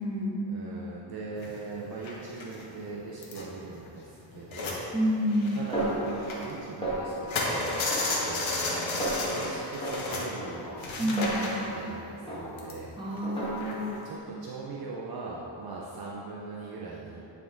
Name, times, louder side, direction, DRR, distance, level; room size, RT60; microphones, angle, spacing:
voice 1, 0.0-0.4 4.9-5.6 11.0-11.5 13.0-14.0, equal, 10° right, -7 dB, 1.5 m, -29 dB
voice 2, 0.5-4.9 5.5-7.8 8.2-10.7 11.0-11.4 11.7-12.9 14.0-17.2, right 3 dB, 50° right, -4 dB, 0.7 m, -40 dB
sound 1, 1.4-4.8 5.1-6.8 7.1-14.1, left 2 dB, 75° left, 1.2 m, -33 dB
Snare drum, 5.7-6.5 6.8-7.4 7.9-8.7 9.0-9.4 9.8-11.9 12.3-12.8 13.2-13.9, right 1 dB, 10° left, 1.5 m, -34 dB
9.3 x 3.7 x 3.8 m, 3.0 s
cardioid pair, 110°, 47 cm